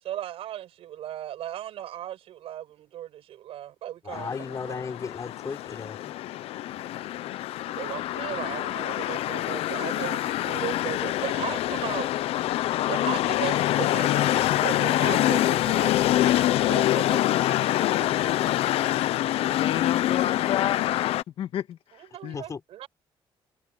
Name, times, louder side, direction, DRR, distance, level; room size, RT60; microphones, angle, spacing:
voice 1, 0.0-4.3 4.7-4.8 7.7-12.1 12.8-16.4 16.7-18.5 18.9-19.0 22.0-22.9, right 12 dB, 80° right, 7.4 m, -37 dB
voice 2, 4.0-6.1 22.3-22.6, left 5 dB, 35° left, 5.8 m, -35 dB
sound 1, 4.1-21.2, left 14 dB, 85° left, 0.7 m, -25 dB
voice 3, 19.6-21.1 21.4-22.4, left 11 dB, 70° left, 1.8 m, -31 dB
cardioid pair, 120°, 10 cm